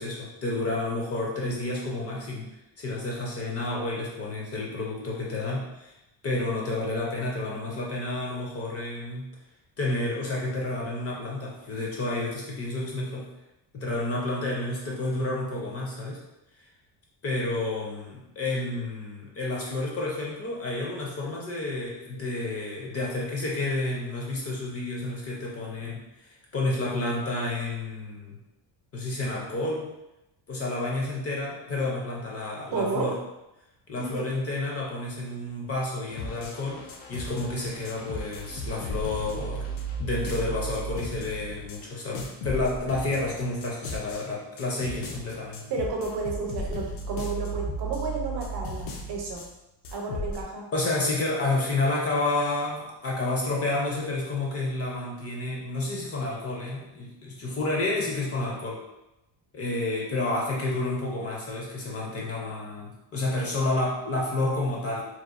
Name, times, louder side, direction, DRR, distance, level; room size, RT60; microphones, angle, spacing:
voice 1, 0.0-2.5 2.8-5.9 6.2-9.3 9.8-13.3 13.7-16.2 17.2-28.4 28.9-29.9 30.5-33.1 33.9-39.7 40.0-45.6 50.7-58.8 59.5-65.0, left 2 dB, 35° left, -3 dB, 0.4 m, -30 dB
voice 2, 32.7-33.1 34.0-34.3 45.7-49.4 49.9-50.6, right 3 dB, 60° right, 0 dB, 0.7 m, -31 dB
sound 1, 36.1-41.8 42.1-44.2 44.6-49.5 49.8-50.4, right 1 dB, 85° left, 0.6 m, -35 dB
2.9 x 2.1 x 2.4 m, 0.92 s
cardioid pair, 145°, 45 cm